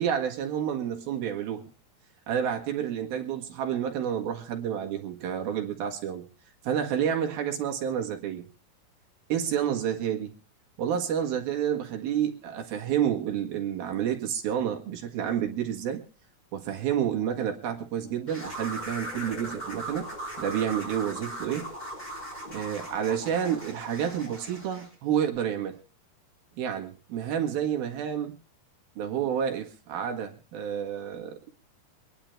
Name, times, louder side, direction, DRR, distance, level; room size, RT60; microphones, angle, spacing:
voice 1, 0.0-1.7 2.3-6.3 6.6-8.5 9.3-10.3 10.8-16.0 16.5-20.1 20.4-21.7 22.5-25.8 26.6-28.3 29.0-31.5, right 9 dB, 75° right, 3 dB, 3.5 m, -29 dB
sound 1, 18.3-24.9, right 1 dB, 10° left, 3.8 m, -38 dB
25.0 x 10.5 x 3.3 m, 0.36 s
omnidirectional pair, 4.4 m